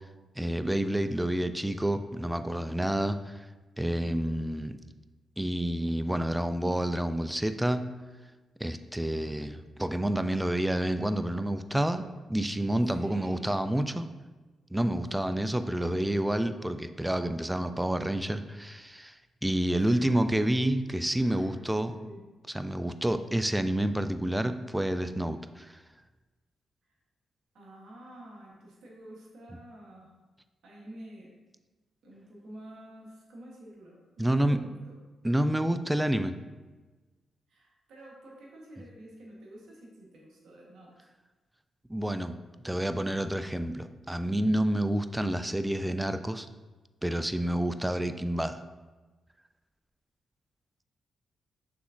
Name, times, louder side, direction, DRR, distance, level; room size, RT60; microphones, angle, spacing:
voice 1, 0.4-3.5 3.8-4.8 5.4-7.8 8.6-14.1 14.7-19.2 19.4-21.9 22.5-25.8 34.2-34.6 35.2-36.3 41.9-42.4 42.6-46.5 47.0-48.6, right 1 dB, 10° right, 10 dB, 0.3 m, -29 dB
voice 2, 12.8-13.4 15.2-15.5 19.7-20.2 21.2-22.3 27.5-30.1 30.6-31.3 32.0-35.0 37.5-41.0, right 1 dB, 75° right, -3 dB, 1.1 m, -49 dB
5.9 x 3.5 x 2.5 m, 1.2 s
supercardioid pair, 50°, 0 cm